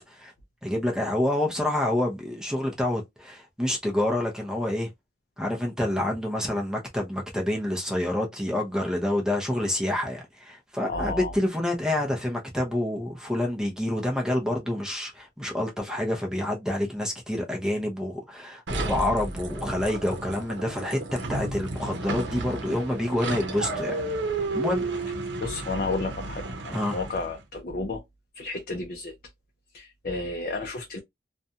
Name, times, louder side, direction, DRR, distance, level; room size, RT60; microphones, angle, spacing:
voice 1, 0.6-4.9 5.4-21.0 21.3-23.9 24.5-24.8 26.7-27.0, left 1 dB, 5° right, 0.6 m, -28 dB
voice 2, 10.9-11.3 25.4-28.0 28.4-29.1 29.7-31.0, left 2 dB, 50° left, 0.5 m, -32 dB
sound 1, 18.7-27.4, right 2 dB, 85° right, 0.7 m, -32 dB
2.6 x 2.2 x 2.7 m
head